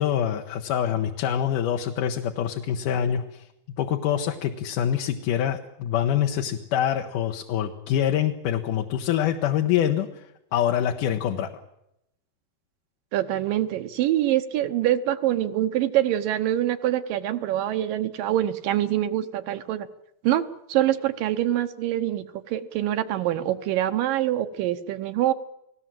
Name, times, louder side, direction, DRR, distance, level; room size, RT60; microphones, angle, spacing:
voice 1, 0.0-3.4 3.8-10.2 10.5-11.5, left 10 dB, 70° left, 3 dB, 2.6 m, -25 dB
voice 2, 13.1-19.9 20.2-20.4 20.7-25.3, right 13 dB, 75° right, 9 dB, 2.6 m, -25 dB
30.0 x 18.5 x 7.7 m, 0.83 s
omnidirectional pair, 4.2 m